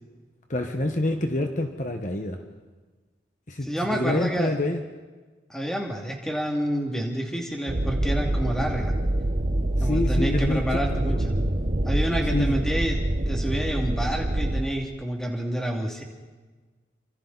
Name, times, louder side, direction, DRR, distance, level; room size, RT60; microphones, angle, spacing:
voice 1, 0.5-2.4 3.5-4.8 9.8-11.0 12.3-12.6, left 1 dB, 40° left, 5 dB, 1.3 m, -27 dB
voice 2, 3.6-4.5 5.5-9.0 9.8-11.3 11.8-13.0 13.3-16.0, right 1 dB, 5° left, 1 dB, 2.6 m, -28 dB
sound 1, 7.7-14.6, right 1 dB, 40° right, 1.0 m, -25 dB
28.5 x 25.5 x 4.1 m, 1.3 s
head